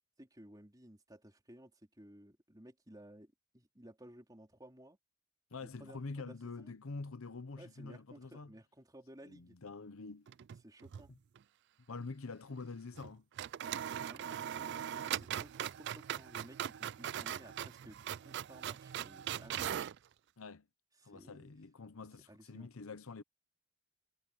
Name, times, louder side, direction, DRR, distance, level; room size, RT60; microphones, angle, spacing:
voice 1, 0.2-5.0 5.6-6.8 7.6-9.6 10.6-11.1 13.8-19.8 21.0-21.5 22.3-22.7, right 1 dB, 15° right, 3.8 m, -57 dB
voice 2, 5.5-8.5 9.2-10.3 11.9-13.3 20.4-20.6 21.0-23.2, left 3 dB, 70° left, 0.8 m, -46 dB
sound 1, 10.3-11.1 11.4-11.5 12.9-13.1 13.4-20.0, right 10 dB, 50° right, 0.3 m, -40 dB
head